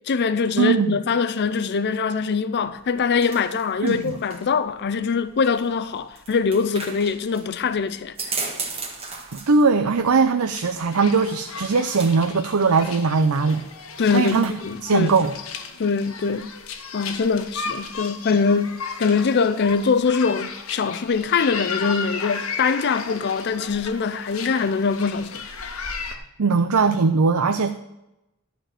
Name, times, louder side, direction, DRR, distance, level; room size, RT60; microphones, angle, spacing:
voice 1, 0.1-8.3 14.0-15.1 15.8-16.5 16.9-25.5, left 5 dB, 50° left, 0.5 m, -23 dB
voice 2, 0.6-1.0 3.8-4.2 9.3-13.6 14.1-14.5 14.8-15.3 26.1-27.7, right 4 dB, 85° right, 0.6 m, -20 dB
sound 1, 2.6-15.5, right 4 dB, 25° right, 1.7 m, -38 dB
sound 2, 10.5-26.2, left 5 dB, 75° left, 1.2 m, -35 dB
11.5 x 4.6 x 7.6 m
head